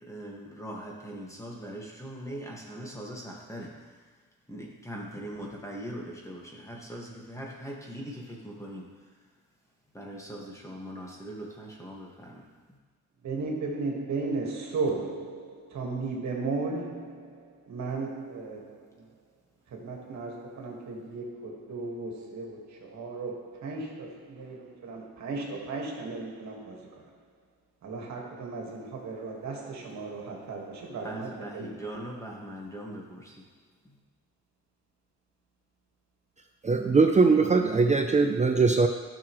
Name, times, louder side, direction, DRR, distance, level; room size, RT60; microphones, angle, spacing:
voice 1, 0.1-3.7 4.5-8.8 9.9-12.4 31.0-33.3, equal, 10° left, 1.8 m, -40 dB
voice 2, 13.2-17.2 17.7-18.6 19.8-22.6 22.9-26.8 27.8-31.8, right 3 dB, 65° right, 1.8 m, -35 dB
voice 3, 36.6-38.9, right 4 dB, 25° right, 0.6 m, -21 dB
12.5 x 6.3 x 3.2 m
cardioid pair, 90°, 30 cm